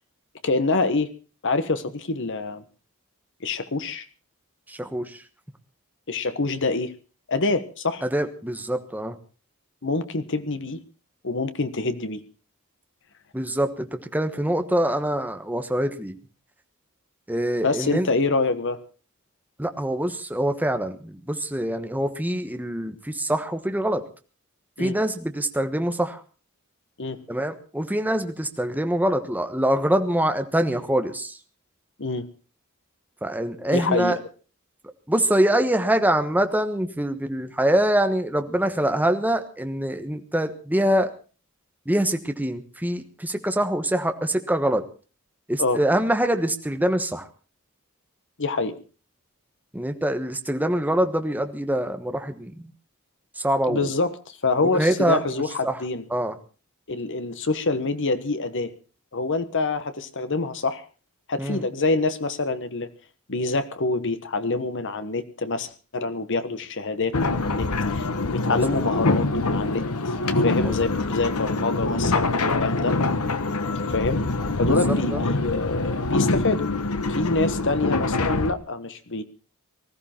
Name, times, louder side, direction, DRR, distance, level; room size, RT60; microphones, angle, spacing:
voice 1, 0.4-1.1 1.4-2.6 3.4-4.0 6.1-6.9 7.3-8.0 9.8-10.8 11.2-12.2 17.6-18.8 24.8-25.0 27.0-27.2 32.0-32.3 33.7-34.2 45.6-45.8 48.4-48.8 53.7-56.0 56.9-58.7 59.1-60.8 61.3-62.9 63.3-69.9 70.4-73.0 73.9-74.2 74.6-76.7 77.1-79.2, left 3 dB, 55° left, 10 dB, 1.3 m, -26 dB
voice 2, 4.7-5.2 8.0-9.2 13.3-16.1 17.3-18.1 19.6-24.0 24.8-26.2 27.3-31.4 33.2-34.2 35.1-41.1 41.9-44.8 45.5-47.3 49.7-52.7 53.4-53.9 54.7-55.8 56.1-56.4 61.4-61.6 68.4-68.9 70.6-70.8 74.6-75.2, right 1 dB, 10° right, 7 dB, 1.3 m, -24 dB
sound 1, 67.1-78.5, left 2 dB, 80° left, 1.2 m, -24 dB
19.5 x 14.0 x 4.5 m, 0.37 s
head